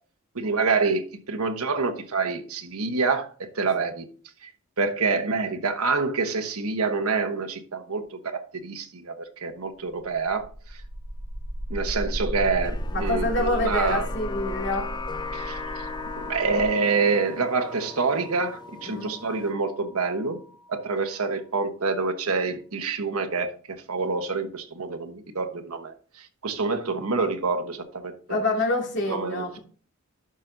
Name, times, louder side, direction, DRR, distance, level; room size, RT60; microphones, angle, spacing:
voice 1, 0.3-4.1 4.4-4.5 4.8-10.5 11.7-14.1 15.3-15.6 16.2-20.4 20.7-23.5 23.9-28.4 29.0-29.6, right 4 dB, 85° right, 1.1 m, -27 dB
sound 1, 10.2-20.0, equal, 80° left, 1.1 m, -35 dB
sound 2, 12.6-19.5, left 4 dB, 20° left, 0.4 m, -38 dB
voice 2, 12.9-14.9 18.8-19.1 28.3-29.6, left 2 dB, 55° left, 2.3 m, -27 dB
11.5 x 5.8 x 2.7 m
head